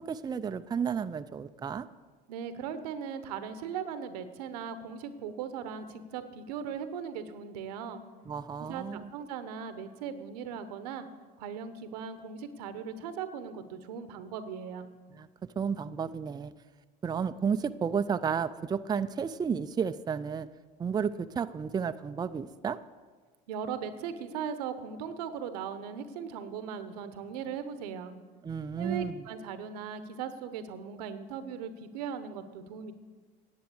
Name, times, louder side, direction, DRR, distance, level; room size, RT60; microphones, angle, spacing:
voice 1, 0.0-1.9 8.3-9.1 15.2-15.3 15.6-16.5 17.0-20.5 20.8-22.8 28.4-29.2, right 6 dB, 20° right, 11 dB, 0.4 m, -32 dB
voice 2, 2.3-8.0 8.6-11.1 11.4-14.9 23.5-28.1 28.7-32.9, right 7 dB, 90° right, 11 dB, 1.0 m, -38 dB
10.0 x 7.8 x 8.0 m, 1.4 s
supercardioid pair, 90°, 20 cm